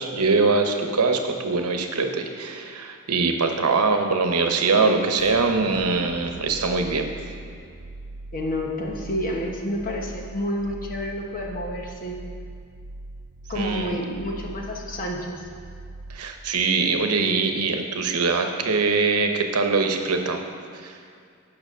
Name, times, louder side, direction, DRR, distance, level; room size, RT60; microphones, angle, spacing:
voice 1, 0.0-7.1 13.5-14.0 16.1-20.4 20.8-20.9, right 4 dB, 85° right, 5 dB, 0.9 m, -23 dB
sound 1, 5.2-16.6, right 2 dB, 55° right, 0.6 m, -41 dB
voice 2, 8.3-12.2 13.5-15.5, equal, 40° left, 0 dB, 1.2 m, -29 dB
9.1 x 5.8 x 6.5 m, 2.3 s
head